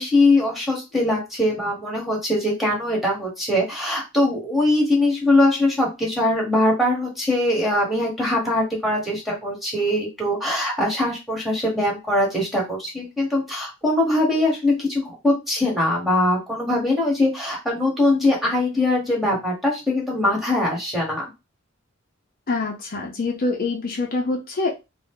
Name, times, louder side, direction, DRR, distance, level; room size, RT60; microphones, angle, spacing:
voice 1, 0.0-21.2, left 1 dB, ahead, -3 dB, 1.2 m, -22 dB
voice 2, 22.5-24.7, left 3 dB, 45° left, 0 dB, 0.5 m, -25 dB
2.6 x 2.1 x 3.6 m, 0.25 s
head